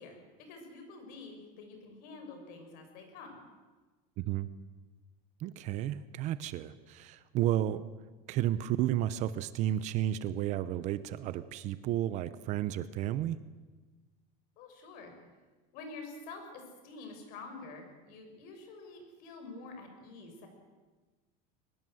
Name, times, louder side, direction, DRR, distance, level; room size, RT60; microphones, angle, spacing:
voice 1, 0.0-3.4 14.6-15.1 15.7-20.5, left 3 dB, 50° left, 5 dB, 6.4 m, -48 dB
voice 2, 4.2-4.5 5.4-7.8 8.3-13.4, right 12 dB, 40° right, 15 dB, 0.8 m, -32 dB
23.0 x 20.5 x 7.8 m, 1.3 s
cardioid pair, 175°, 19 cm